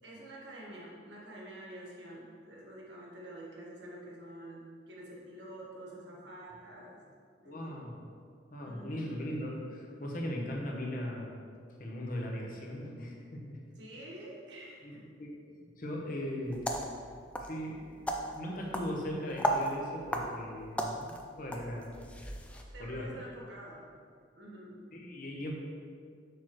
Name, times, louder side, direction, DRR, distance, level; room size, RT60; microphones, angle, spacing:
voice 1, 0.0-7.0 7.4-7.9 8.6-9.3 13.7-15.0 22.7-23.8 24.3-24.8, right 1 dB, 70° right, -4 dB, 1.5 m, -48 dB
voice 2, 7.4-8.0 8.5-11.3 11.8-13.6 14.8-14.9 15.2-16.7 17.4-17.9 18.3-21.9 22.8-23.1 24.9-25.5, left 1 dB, 45° left, -1 dB, 0.9 m, -38 dB
sound 1, 16.5-22.6, right 1 dB, 5° left, 0.4 m, -36 dB
6.6 x 6.1 x 3.1 m, 2.2 s
head